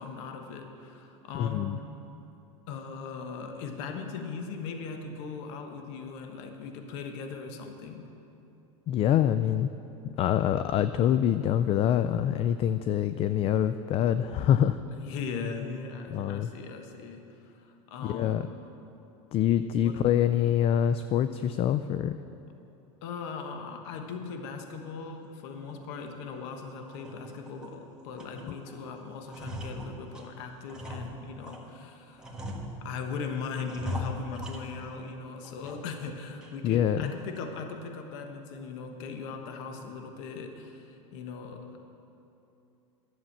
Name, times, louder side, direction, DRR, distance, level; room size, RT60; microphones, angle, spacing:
voice 1, 0.0-1.8 2.7-8.1 14.9-18.5 19.8-20.0 23.0-32.5 32.8-41.8, left 5 dB, 65° left, 5 dB, 1.3 m, -39 dB
voice 2, 1.3-1.8 8.9-9.7 10.0-14.8 16.1-16.5 18.0-18.4 19.3-22.2 36.6-37.1, left 10 dB, 35° left, 12 dB, 0.3 m, -25 dB
sound 1, 25.7-25.8 26.3-26.4 26.9-27.8 28.1-28.8 29.1-31.7 32.2-33.1 33.6-35.1 35.4-36.1 36.4-36.5 37.0-37.4, left 1 dB, 5° right, 1.5 m, -40 dB
11.5 x 7.3 x 7.3 m, 2.8 s
hypercardioid pair, 105°, 16 cm